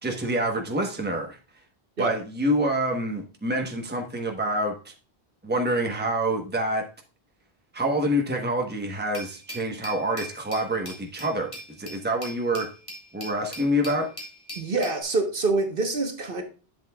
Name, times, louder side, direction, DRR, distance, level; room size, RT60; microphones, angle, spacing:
voice 1, 0.0-1.4 2.0-4.9 5.4-6.9 7.7-11.5 11.8-12.7 13.1-14.1, right 1 dB, 10° right, 3 dB, 1.1 m, -26 dB
Glass, 9.1-15.0, equal, 30° left, 2.3 m, -41 dB
voice 2, 14.6-16.4, right 3 dB, 60° right, 5 dB, 1.4 m, -26 dB
8.3 x 7.7 x 2.3 m, 0.34 s
omnidirectional pair, 1.1 m